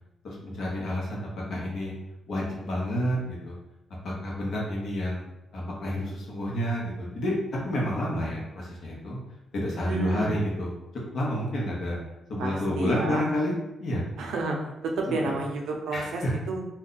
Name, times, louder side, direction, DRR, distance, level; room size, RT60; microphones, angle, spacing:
voice 1, 0.2-1.9 2.3-3.6 4.0-5.3 5.5-7.3 7.6-9.2 9.5-10.7 11.1-12.0 12.3-13.5 13.8-14.0 15.1-15.3 15.9-16.3, left 1 dB, 55° left, -4 dB, 0.9 m, -29 dB
voice 2, 9.8-10.4 12.4-13.3 14.2-14.6 14.8-16.6, right 3 dB, 85° right, 1 dB, 0.6 m, -30 dB
2.5 x 2.2 x 3.8 m, 0.91 s
wide cardioid pair, 175°, 0 cm